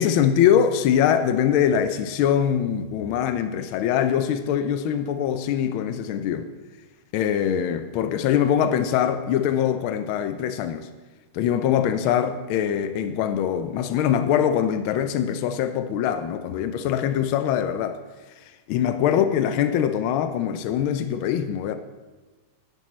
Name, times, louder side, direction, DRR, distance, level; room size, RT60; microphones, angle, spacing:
voice 1, 0.0-6.5 7.1-10.9 11.3-18.0 18.7-21.8, left 9 dB, 85° left, 1.4 m, -23 dB
10.5 x 10.0 x 3.1 m
omnidirectional pair, 2.2 m